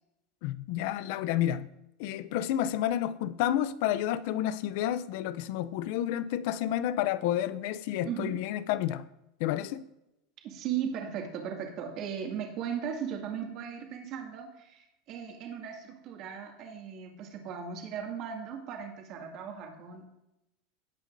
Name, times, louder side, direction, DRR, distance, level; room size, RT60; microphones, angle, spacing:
voice 1, 0.4-1.7 2.0-9.0 9.4-9.8, left 12 dB, 60° left, 0.5 m, -30 dB
voice 2, 8.0-8.4 10.4-20.1, right 8 dB, 45° right, 2.2 m, -37 dB
17.5 x 8.2 x 2.7 m
supercardioid pair, 160°, 0 cm